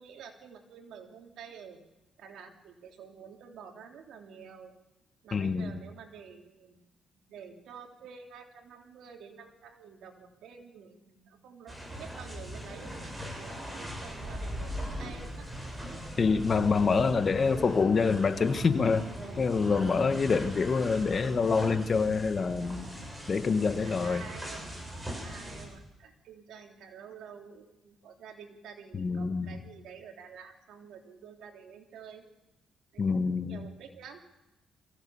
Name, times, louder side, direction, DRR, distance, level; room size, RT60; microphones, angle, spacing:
voice 1, 0.0-1.8 2.2-4.8 5.2-6.8 7.1-15.5 23.8-24.7 25.0-32.3 32.9-34.2, right 6 dB, 80° right, 3 dB, 3.2 m, -49 dB
voice 2, 5.3-5.7 16.2-19.0 19.4-22.9 23.3-24.2 28.9-29.5 33.0-33.6, left 5 dB, 40° left, 10 dB, 1.5 m, -26 dB
sound 1, 11.7-25.6, equal, 10° right, 7.4 m, -40 dB
23.0 x 16.0 x 7.1 m, 0.96 s
cardioid pair, 90°, 0 cm